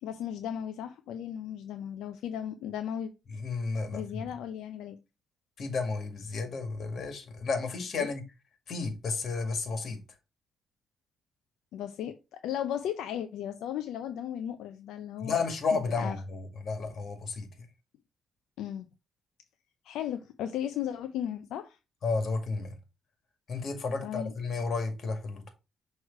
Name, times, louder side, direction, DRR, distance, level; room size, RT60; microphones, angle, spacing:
voice 1, 0.0-3.1 3.9-5.0 8.0-8.1 11.7-15.4 15.7-16.2 18.6-18.9 19.8-21.8 24.0-24.3, left 10 dB, 85° left, 0.5 m, -36 dB
voice 2, 3.3-4.2 5.6-8.2 8.7-10.0 15.2-17.5 22.0-22.7 23.5-25.5, left 4 dB, 55° left, 1.9 m, -32 dB
6.3 x 3.2 x 4.7 m
cardioid pair, 90°, 0 cm